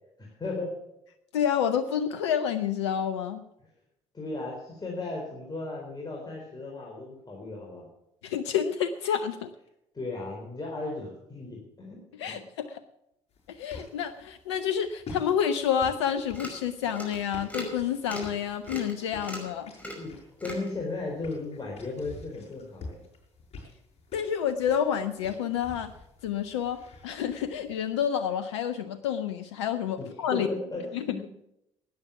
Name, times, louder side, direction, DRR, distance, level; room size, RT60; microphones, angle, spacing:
voice 1, 0.2-0.7 4.1-7.9 9.9-12.0 12.3-12.4 19.9-20.1 20.4-23.0 30.3-31.3, left 3 dB, 30° left, -2 dB, 4.1 m, -35 dB
voice 2, 1.3-3.4 8.2-9.5 12.2-12.8 13.5-19.7 24.1-25.9 26.2-30.5 30.9-31.0, left 8 dB, 80° left, 12 dB, 0.5 m, -29 dB
sound 1, 13.3-28.1, left 3 dB, 45° left, 6.7 m, -48 dB
sound 2, 15.9-16.0 16.3-16.6 16.9-17.2 17.5-17.8 18.1-18.3 18.7-18.9 19.2-19.5 19.8-20.1 20.4-20.7, equal, 10° left, 5.3 m, -38 dB
13.0 x 9.5 x 7.1 m, 0.83 s
hypercardioid pair, 50°, 14 cm